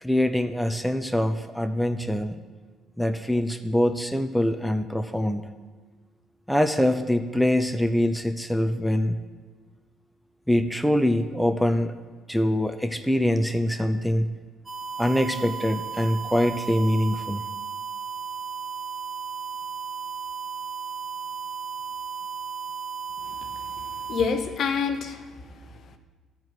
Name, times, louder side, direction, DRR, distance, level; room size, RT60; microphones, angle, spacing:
voice 1, 0.0-2.4 3.0-5.5 6.5-9.2 10.5-11.9 12.3-14.3 15.0-17.4, left 1 dB, ahead, 6 dB, 0.6 m, -24 dB
sound 1, 14.7-24.2, right 7 dB, 35° right, 2.2 m, -35 dB
voice 2, 23.7-25.3 25.6-26.0, left 5 dB, 60° left, 8 dB, 0.9 m, -28 dB
12.0 x 4.6 x 7.9 m, 1.4 s
supercardioid pair, 70°, 0 cm